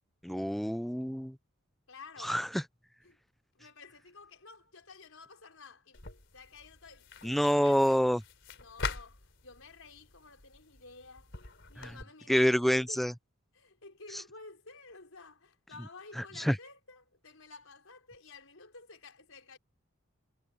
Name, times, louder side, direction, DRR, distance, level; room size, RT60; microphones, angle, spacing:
voice 1, 0.2-1.3 2.2-2.6 7.2-8.2 12.3-13.1 14.1-14.2 16.2-16.6, equal, ahead, 0.5 m, -27 dB
voice 2, 1.9-2.4 3.0-3.2 3.5-6.0 6.3-7.7 8.5-11.3 11.7-13.1 13.5-19.6, left 4 dB, 80° left, 4.6 m, -52 dB
sound 1, 5.9-12.0, left 4 dB, 60° left, 4.1 m, -44 dB
head